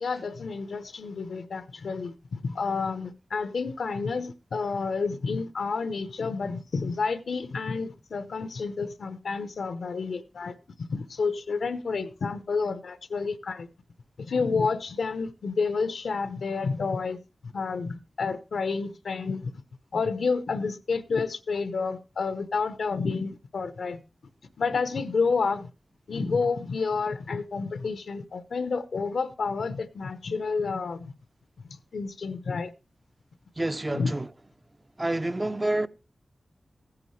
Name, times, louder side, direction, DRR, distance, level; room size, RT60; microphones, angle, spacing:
voice 1, 0.0-13.7 14.2-17.2 17.5-19.6 19.9-24.0 24.6-25.7 26.1-31.1 31.6-32.7 33.9-34.1, left 4 dB, 85° left, 0.8 m, -30 dB
voice 2, 33.6-34.3 35.0-35.9, right 1 dB, 25° right, 0.6 m, -28 dB
15.0 x 9.8 x 3.2 m
wide cardioid pair, 75°, 0 cm